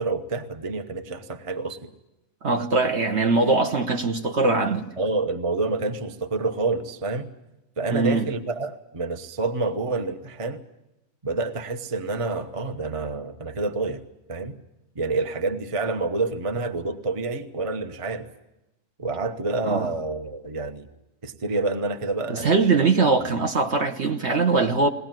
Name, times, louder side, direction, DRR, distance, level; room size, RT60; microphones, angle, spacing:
voice 1, 0.0-1.9 5.0-7.3 7.8-10.6 11.2-14.0 14.3-14.6 14.9-18.3 19.0-20.9 21.2-22.9 23.3-23.4, right 3 dB, 25° right, 0.9 m, -28 dB
voice 2, 2.4-4.9 7.9-8.2 19.6-19.9 22.3-24.9, right 3 dB, 50° right, 1.3 m, -22 dB
21.0 x 18.5 x 9.1 m
omnidirectional pair, 1.6 m